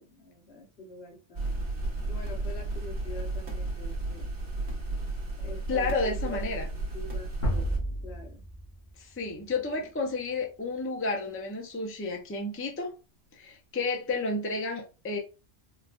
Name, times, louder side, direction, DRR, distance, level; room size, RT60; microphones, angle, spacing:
voice 1, 0.0-1.7 2.1-4.4 5.4-7.8 8.0-8.4 9.8-9.9, left 1 dB, 70° left, 1.2 m, -46 dB
sound 1, 1.3-7.8, right 2 dB, 70° right, 1.3 m, -33 dB
voice 2, 5.7-6.7 9.0-12.9 13.4-15.2, left 3 dB, 15° left, 0.4 m, -31 dB
sound 2, 7.4-10.4, equal, 45° left, 1.5 m, -33 dB
4.1 x 2.3 x 2.4 m
omnidirectional pair, 1.1 m